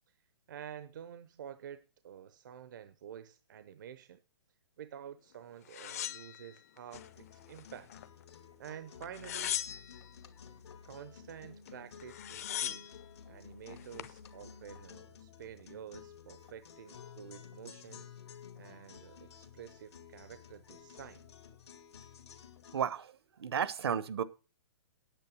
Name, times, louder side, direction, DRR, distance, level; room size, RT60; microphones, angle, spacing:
voice 1, 0.5-4.2 4.8-7.9 8.6-9.6 10.8-12.9 13.3-18.1 18.5-21.2, right 9 dB, 50° right, 0.7 m, -49 dB
sound 1, 5.7-7.1 7.5-8.3 9.0-10.1 11.7-11.8 12.0-13.0 13.7-14.2, left 11 dB, 35° left, 0.6 m, -39 dB
sound 2, 6.9-22.9, left 7 dB, 85° left, 2.0 m, -53 dB
voice 2, 22.7-24.2, right 8 dB, 70° right, 1.2 m, -33 dB
9.1 x 8.6 x 6.3 m
hypercardioid pair, 175°, 14 cm